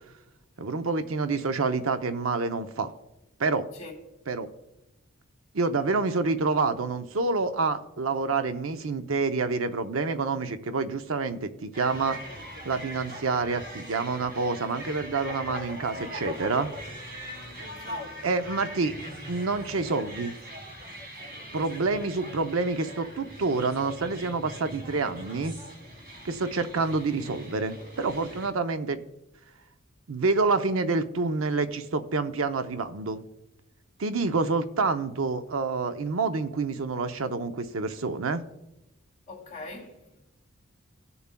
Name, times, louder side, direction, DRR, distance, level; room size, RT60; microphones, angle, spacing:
voice 1, 0.6-2.9 3.4-3.6 4.3-4.5 5.5-12.2 12.6-16.7 18.2-19.0 19.3-20.3 21.5-25.5 26.2-29.0 30.1-33.2 34.0-38.4, right 4 dB, 75° right, 0.6 m, -28 dB
sound 1, 11.7-28.5, equal, 50° right, 2.4 m, -41 dB
voice 2, 17.8-18.1 39.3-40.2, left 2 dB, 35° left, 2.7 m, -43 dB
18.0 x 6.9 x 2.2 m
head